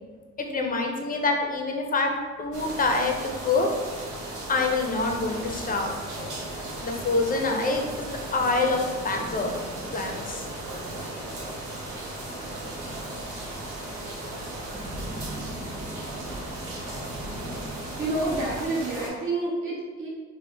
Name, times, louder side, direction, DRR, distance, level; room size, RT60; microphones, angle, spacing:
voice 1, 0.4-3.1 3.4-3.7 4.5-5.9 6.8-9.5 9.9-10.4, left 3 dB, 30° left, 2 dB, 0.5 m, -26 dB
sound 1, 2.5-19.1, right 1 dB, 85° right, 0.9 m, -36 dB
sound 2, 5.0-18.7, equal, 5° left, 1.1 m, -42 dB
voice 2, 18.0-20.1, right 2 dB, 45° right, -6 dB, 1.2 m, -28 dB
3.4 x 2.1 x 3.3 m, 1.4 s
cardioid pair, 90°, 30 cm